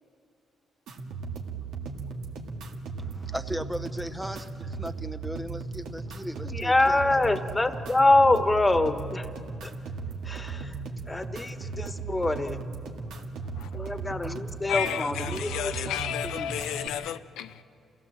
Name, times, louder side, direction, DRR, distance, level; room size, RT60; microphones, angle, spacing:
sound 1, 0.9-16.9, right 4 dB, 85° right, 1.8 m, -37 dB
voice 1, 3.2-6.7, equal, 5° right, 0.7 m, -36 dB
voice 2, 6.4-9.3 9.6-9.7 10.2-10.8 11.1-12.6 13.7-16.0 16.3-16.5, left 2 dB, 15° left, 1.3 m, -25 dB
voice 3, 14.7-17.6, left 10 dB, 90° left, 0.6 m, -32 dB
28.0 x 16.0 x 7.5 m
cardioid pair, 90°, 0 cm